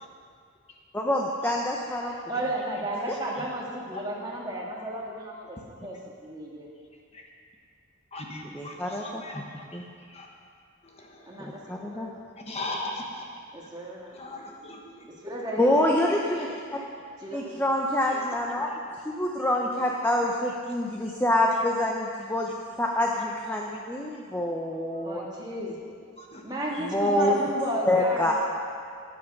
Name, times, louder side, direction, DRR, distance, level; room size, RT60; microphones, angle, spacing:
voice 1, 0.9-2.1 3.1-3.2 8.4-9.2 9.7-9.8 11.4-12.1 15.6-16.8 17.3-18.7 19.0-25.3 26.8-27.4 27.8-28.3, left 1 dB, 10° left, -1 dB, 0.7 m, -26 dB
voice 2, 2.3-5.9 6.2-6.7 11.3-12.1 13.5-14.2 15.2-16.0 17.2-17.6 25.0-25.8 26.4-28.3, right 1 dB, 20° right, -3 dB, 1.6 m, -33 dB
voice 3, 8.1-9.6 10.1-10.3 12.5-13.2 14.2-14.8 16.5-16.6 26.3-26.4, left 2 dB, 30° left, 0 dB, 1.2 m, -37 dB
13.5 x 9.6 x 5.3 m, 2.3 s
head